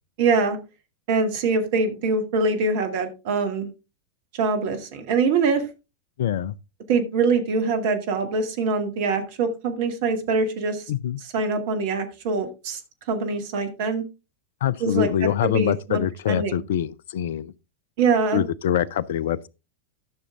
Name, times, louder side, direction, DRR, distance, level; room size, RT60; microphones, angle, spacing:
voice 1, 0.2-0.6 1.1-3.7 4.4-5.6 6.9-10.8 11.3-12.8 13.1-14.0 14.8-16.0 16.3-16.5 18.0-18.4, right 4 dB, 50° right, 1.9 m, -23 dB
voice 2, 6.2-6.5 10.9-11.2 14.6-17.5 18.3-19.5, left 10 dB, 55° left, 0.5 m, -24 dB
12.5 x 6.3 x 3.6 m
figure-of-eight pair, 90°, 0 cm